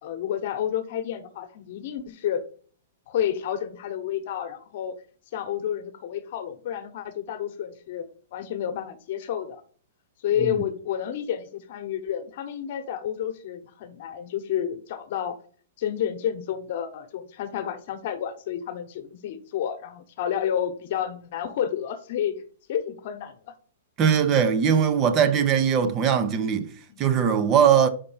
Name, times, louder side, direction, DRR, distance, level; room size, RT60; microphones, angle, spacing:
voice 1, 0.0-2.4 3.1-4.9 5.3-9.6 10.2-15.4 15.8-22.4 22.7-23.5 26.9-27.1, left 9 dB, 55° left, 1.1 m, -30 dB
voice 2, 24.0-26.7 27.0-27.9, right 7 dB, 30° right, 0.7 m, -20 dB
5.1 x 4.2 x 5.6 m
hypercardioid pair, 140°, 0 cm